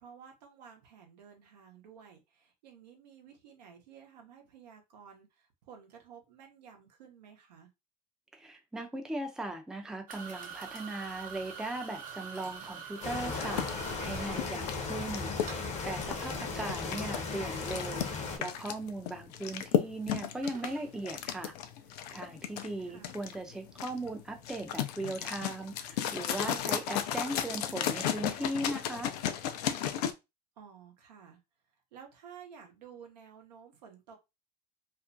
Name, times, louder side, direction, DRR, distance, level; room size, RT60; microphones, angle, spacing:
voice 1, 0.0-7.7 22.8-23.2 30.6-31.4 31.9-34.2, right 7 dB, 80° right, 0.7 m, -53 dB
voice 2, 8.3-13.7 14.0-15.3 15.8-18.1 18.4-21.5 22.1-29.1, right 2 dB, 5° right, 0.5 m, -38 dB
sound 1, 10.1-29.5, right 6 dB, 40° right, 0.8 m, -50 dB
sound 2, 13.0-18.4, left 4 dB, 35° left, 0.7 m, -36 dB
sound 3, 13.4-30.1, left 10 dB, 75° left, 0.4 m, -35 dB
2.4 x 2.1 x 2.5 m
hypercardioid pair, 80°, 21 cm